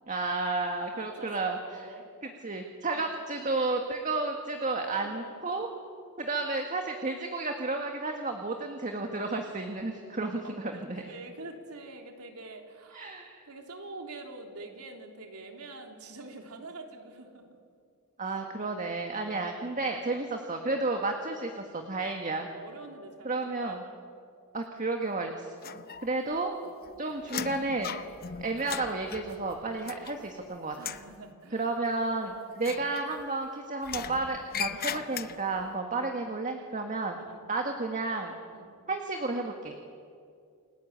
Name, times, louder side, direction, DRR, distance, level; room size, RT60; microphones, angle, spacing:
voice 1, 0.1-1.9 2.2-5.7 6.2-11.0 12.9-13.4 18.2-22.5 23.2-23.8 24.5-25.5 26.0-26.6 27.0-28.0 28.4-30.9 31.5-37.2 37.5-38.3 38.9-39.8, right 3 dB, 35° right, 3 dB, 1.8 m, -32 dB
voice 2, 0.9-2.0 2.9-3.1 4.7-5.5 10.7-13.1 13.5-17.4 18.2-18.7 22.4-24.0 25.6-25.9 30.8-31.7 32.2-32.4 35.9-36.1 37.3-37.5 38.5-38.7, right 2 dB, 85° right, 3 dB, 3.6 m, -45 dB
sound 1, 25.6-26.4 26.7-30.4 30.7-31.1 32.6-33.4 33.8-35.6, left 8 dB, 45° left, 0.8 m, -39 dB
29.5 x 21.0 x 8.9 m, 2.4 s
head